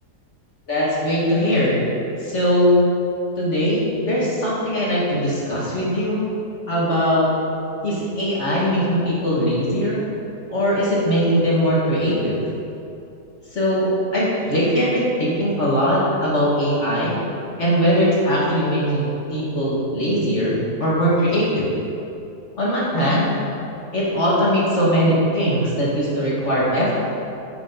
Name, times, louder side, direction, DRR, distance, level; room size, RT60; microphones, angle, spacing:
voice 1, 0.7-1.8 2.2-2.9 3.4-6.2 6.7-7.3 7.8-10.0 10.5-12.4 13.5-17.2 17.6-21.7 22.6-23.3 23.9-26.9, equal, 45° left, -7 dB, 2.6 m, -20 dB
11.0 x 8.8 x 4.2 m, 2.7 s
omnidirectional pair, 1.8 m